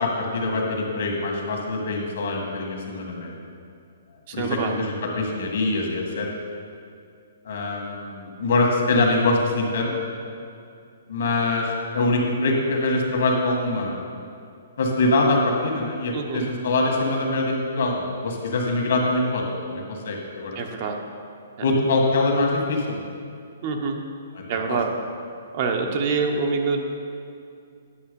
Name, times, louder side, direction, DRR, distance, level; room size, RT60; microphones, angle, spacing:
voice 1, 0.0-3.3 4.3-6.3 7.5-9.9 11.1-14.0 14.8-19.4 19.7-20.6 21.6-23.1 24.7-24.8, left 2 dB, 65° left, 1 dB, 1.8 m, -24 dB
voice 2, 4.3-4.7 16.1-16.4 20.5-21.0 23.6-24.0 24.5-24.9 25.5-26.8, right 4 dB, 45° right, 3 dB, 1.0 m, -25 dB
9.9 x 6.0 x 5.3 m, 2.4 s
hypercardioid pair, 150°, 0 cm